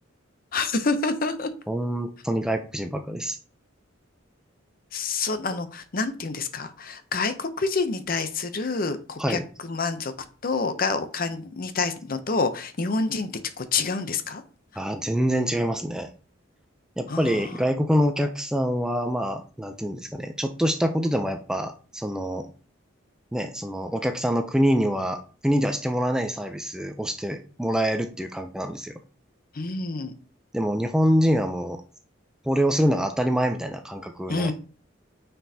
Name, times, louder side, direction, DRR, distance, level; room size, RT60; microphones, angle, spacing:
voice 1, 0.5-1.5 4.9-10.1 10.4-14.4 17.1-17.5 29.5-30.1 34.3-34.5, left 4 dB, 45° left, 10 dB, 0.6 m, -27 dB
voice 2, 1.7-3.4 9.2-9.4 14.8-16.1 17.0-22.5 23.3-28.9 30.5-31.8 32.5-34.5, equal, 5° right, 6 dB, 0.4 m, -25 dB
9.2 x 4.5 x 2.8 m, 0.38 s
head